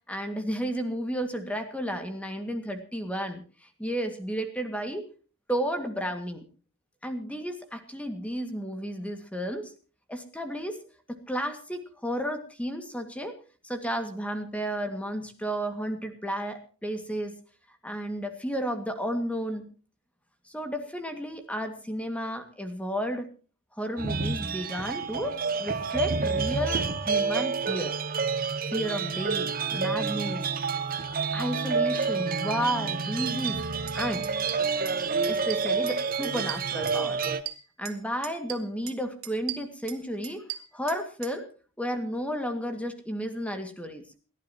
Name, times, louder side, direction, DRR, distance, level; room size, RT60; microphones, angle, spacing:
voice 1, 0.1-5.0 5.5-6.4 7.0-9.7 10.1-10.8 11.1-13.4 13.6-17.4 17.8-19.7 20.5-23.3 23.7-27.9 28.7-30.5 31.1-33.6 33.9-34.3 35.3-37.2 37.8-40.5 40.7-41.5 41.8-44.0, equal, 5° left, 6 dB, 2.0 m, -32 dB
sound 1, 24.0-37.4, right 5 dB, 40° right, 1.0 m, -29 dB
sound 2, 33.5-33.6 33.9-34.0 34.2-35.0 35.2-36.0 36.2-38.0 38.2-39.0 39.2-41.3, right 13 dB, 75° right, 1.9 m, -39 dB
29.0 x 11.5 x 3.0 m, 0.38 s
head